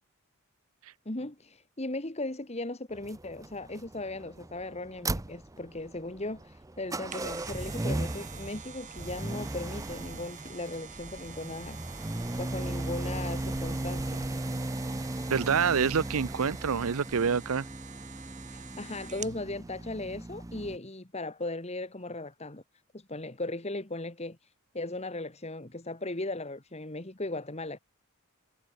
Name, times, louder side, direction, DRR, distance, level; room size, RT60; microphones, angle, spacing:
voice 1, 1.0-11.8 12.4-14.2 18.5-22.6 22.9-27.8, left 2 dB, 30° left, 1.7 m, -37 dB
sound 1, 2.9-20.8, right 1 dB, 15° right, 0.6 m, -37 dB
sound 2, 6.8-19.4 19.9-20.0, right 8 dB, 35° right, 4.9 m, -48 dB
voice 2, 15.3-17.6, right 6 dB, 70° right, 0.6 m, -27 dB
head